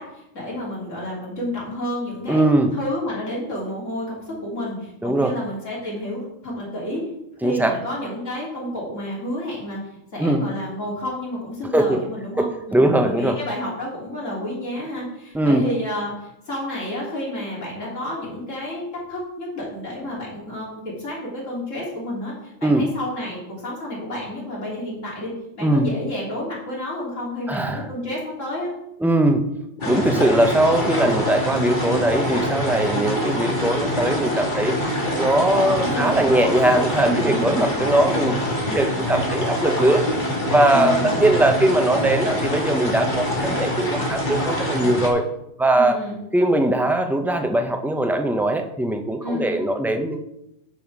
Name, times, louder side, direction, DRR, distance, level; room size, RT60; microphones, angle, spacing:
voice 1, 0.0-7.0 7.4-9.8 10.1-28.7 35.6-36.4 37.0-37.8 40.7-41.3 45.7-46.2 49.2-49.7, left 1 dB, 70° left, -5 dB, 3.5 m, -30 dB
voice 2, 2.3-2.7 5.0-5.3 7.4-7.8 10.2-10.5 11.7-12.0 12.4-13.4 15.3-15.7 22.6-22.9 25.6-25.9 27.5-27.9 29.0-29.5 29.9-34.8 35.2-38.4 38.7-40.0 40.4-45.2 45.6-46.0 46.3-50.2, right 1 dB, 5° right, 5 dB, 0.4 m, -20 dB
sound 1, 29.8-45.1, equal, 35° left, 1.8 m, -24 dB
9.2 x 5.6 x 4.8 m, 0.83 s
omnidirectional pair, 1.4 m